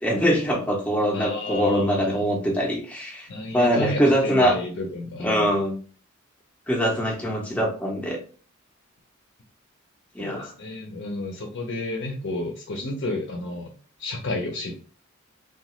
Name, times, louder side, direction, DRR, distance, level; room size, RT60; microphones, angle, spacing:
voice 1, 0.0-3.3 3.5-4.6 5.2-5.8 6.7-8.2 10.2-10.5, equal, 5° left, -2 dB, 0.5 m, -23 dB
voice 2, 1.1-2.3 3.3-5.6 10.2-13.7 14.0-14.7, left 2 dB, 60° left, 2 dB, 0.5 m, -31 dB
2.9 x 2.3 x 2.9 m, 0.41 s
head